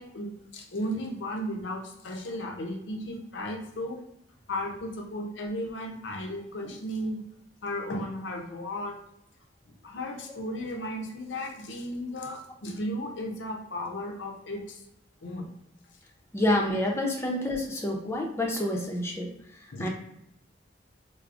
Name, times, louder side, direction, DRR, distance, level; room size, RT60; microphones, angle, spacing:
voice 1, 0.0-4.0 4.5-7.2 7.6-9.0 9.8-14.8 15.2-15.5 19.7-19.9, left 1 dB, 75° left, 1 dB, 0.6 m, -35 dB
voice 2, 16.3-19.3 19.8-19.9, left 1 dB, 15° left, 0 dB, 0.5 m, -28 dB
4.7 x 2.0 x 2.4 m, 0.80 s
head